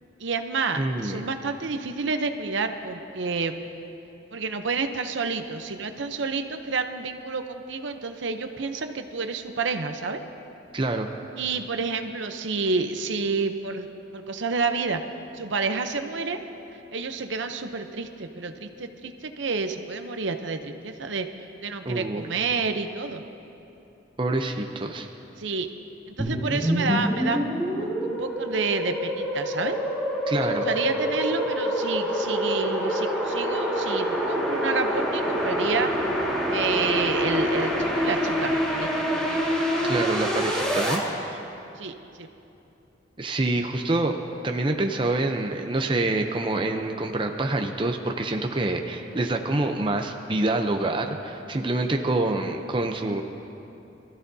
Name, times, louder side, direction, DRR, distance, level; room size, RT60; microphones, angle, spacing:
voice 1, 0.2-3.6 4.3-10.2 11.4-13.9 14.1-15.0 15.3-16.4 16.9-21.3 21.6-23.2 25.4-25.7 26.2-29.8 30.4-35.9 36.5-39.4 41.3-41.4 41.8-42.3, right 4 dB, 75° right, 7 dB, 0.8 m, -29 dB
voice 2, 0.8-1.2 10.7-11.1 21.9-22.3 24.2-25.1 30.3-30.7 39.8-41.0 43.2-53.2, right 2 dB, 25° right, 4 dB, 0.6 m, -26 dB
sound 1, 26.2-41.0, equal, 5° left, 1.9 m, -26 dB
24.0 x 14.5 x 2.8 m, 2.8 s
head